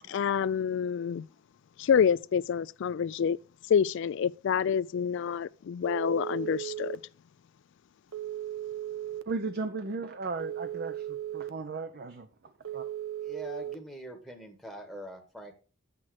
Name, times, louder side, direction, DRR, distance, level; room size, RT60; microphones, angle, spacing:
voice 1, 0.1-1.2 1.8-3.4 3.7-7.0, left 7 dB, 60° left, 0.3 m, -27 dB
Telephone, 5.9-7.0 8.1-9.2 10.4-11.5 12.6-13.7, right 12 dB, 90° right, 0.7 m, -36 dB
voice 2, 9.3-11.0 11.3-12.3 12.7-12.8, right 3 dB, 50° right, 0.6 m, -35 dB
voice 3, 13.2-15.5, equal, ahead, 1.1 m, -43 dB
7.5 x 6.0 x 4.6 m
head